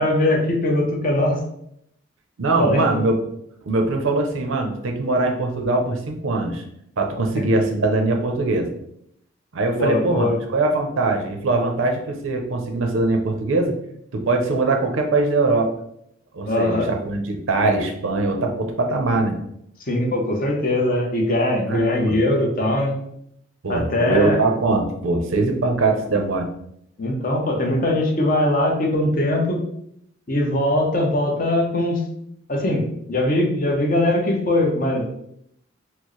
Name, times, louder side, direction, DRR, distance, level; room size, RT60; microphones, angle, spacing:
voice 1, 0.0-1.4 2.6-2.8 9.8-10.4 16.4-16.9 19.9-22.9 23.7-24.4 27.0-29.6 30.3-32.0 32.5-32.8 33.1-35.1, left 1 dB, 45° left, 0 dB, 0.7 m, -21 dB
voice 2, 2.4-3.2 3.7-6.6 7.0-8.7 9.5-13.7 14.1-15.7 16.3-19.4 21.7-22.2 23.6-26.5, right 2 dB, 80° right, 3 dB, 0.5 m, -22 dB
4.3 x 2.0 x 3.0 m, 0.74 s
head